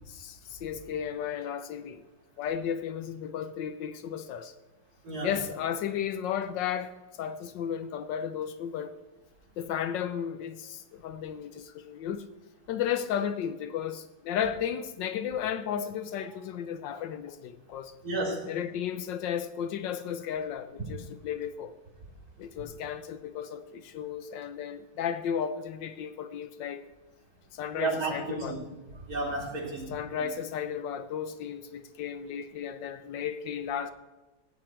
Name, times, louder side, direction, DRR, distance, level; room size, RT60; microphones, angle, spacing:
voice 1, 0.1-2.0 2.4-4.5 5.2-6.9 7.2-8.9 9.6-12.3 12.7-17.9 18.5-21.7 22.4-26.9 27.5-28.6 29.9-33.9, left 8 dB, 75° left, 1.3 m, -34 dB
voice 2, 18.0-18.5 27.8-28.6 29.1-29.9 30.2-30.3, right 2 dB, 50° right, 3.4 m, -32 dB
15.5 x 9.3 x 4.4 m
omnidirectional pair, 2.1 m